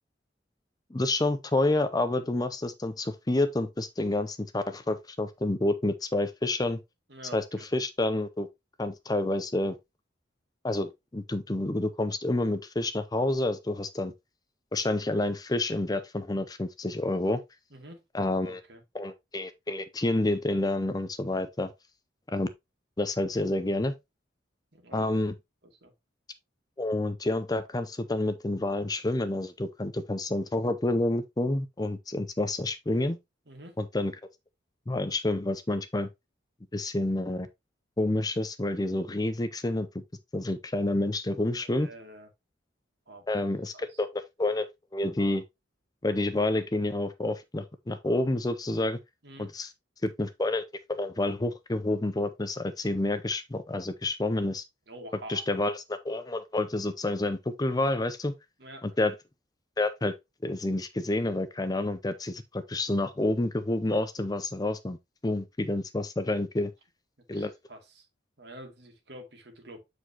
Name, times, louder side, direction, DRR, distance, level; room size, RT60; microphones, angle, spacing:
voice 1, 0.9-6.8 7.3-7.4 7.7-8.5 8.8-9.8 10.6-14.1 14.7-17.4 18.1-18.6 18.9-21.7 22.3-22.5 23.0-23.9 24.9-25.3 26.8-33.2 33.8-34.1 34.9-36.1 36.7-37.5 38.0-39.9 40.3-41.9 43.3-44.7 44.9-45.4 46.0-49.0 49.4-49.7 50.0-50.6 50.9-54.6 55.3-58.3 58.8-59.1 59.8-60.1 60.4-65.0 65.2-66.7 67.3-67.5, left 2 dB, 20° left, 0.6 m, -29 dB
voice 2, 7.1-7.7 17.7-18.8 24.7-25.0 25.8-25.9 33.5-33.8 41.5-42.3 43.1-43.3 43.7-44.0 49.2-49.5 54.9-55.5 58.6-58.9 67.3-68.1 68.4-69.8, right 1 dB, 60° right, 2.1 m, -47 dB
8.0 x 4.8 x 2.8 m
head